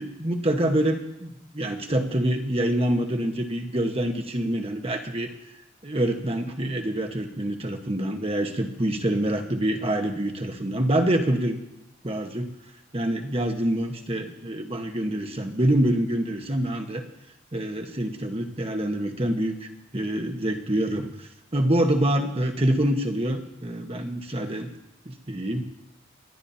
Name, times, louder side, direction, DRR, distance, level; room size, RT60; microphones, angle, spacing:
voice 1, 0.0-5.3 5.8-11.6 12.0-12.5 12.9-17.0 17.5-24.7 25.0-25.7, right 1 dB, 30° right, 4 dB, 1.3 m, -26 dB
28.5 x 11.5 x 2.8 m, 0.88 s
head